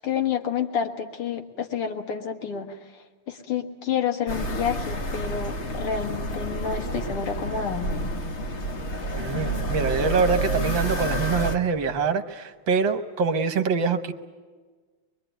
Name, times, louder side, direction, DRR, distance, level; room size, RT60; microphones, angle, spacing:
voice 1, 0.0-8.0, left 7 dB, 85° left, 4 dB, 2.7 m, -29 dB
sound 1, 4.3-11.6, right 1 dB, 35° left, 1.5 m, -29 dB
voice 2, 9.2-14.1, right 5 dB, 65° right, 9 dB, 1.7 m, -24 dB
23.5 x 23.0 x 9.1 m, 1.4 s
omnidirectional pair, 2.4 m